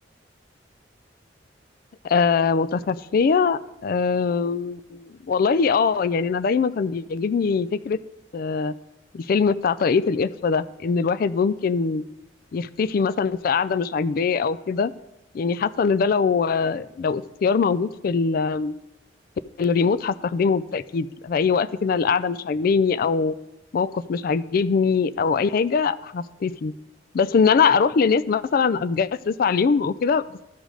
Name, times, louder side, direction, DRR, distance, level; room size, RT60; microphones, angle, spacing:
voice 1, 2.0-8.0 8.3-8.7 9.1-12.0 12.5-14.9 15.3-18.7 19.6-23.3 23.7-26.7 27.1-30.4, left 5 dB, 50° left, 15 dB, 0.3 m, -22 dB
13.0 x 5.1 x 3.8 m, 0.90 s
head